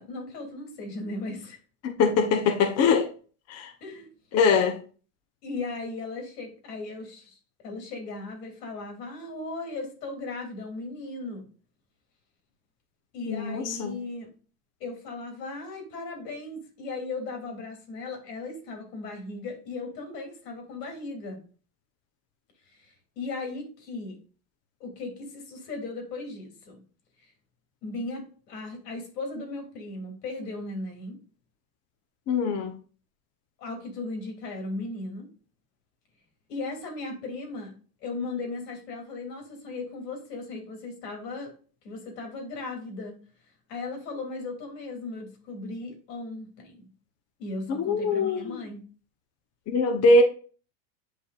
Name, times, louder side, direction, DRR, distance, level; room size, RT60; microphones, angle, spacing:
voice 1, 0.0-1.6 3.8-4.1 5.4-7.4 7.6-11.5 13.1-14.3 14.8-21.4 22.7-24.2 24.8-26.8 27.2-27.3 27.8-31.2 33.6-35.3 36.5-37.7 38.0-41.5 41.8-43.2 43.7-46.8 47.4-48.8, left 3 dB, 90° left, 2.9 m, -37 dB
voice 2, 1.8-3.1 3.5-3.7 4.3-4.8 13.3-13.9 32.3-32.7 47.8-48.6 49.7-50.2, left 3 dB, 30° left, 0.9 m, -22 dB
8.3 x 5.1 x 2.4 m
supercardioid pair, 130°, 47 cm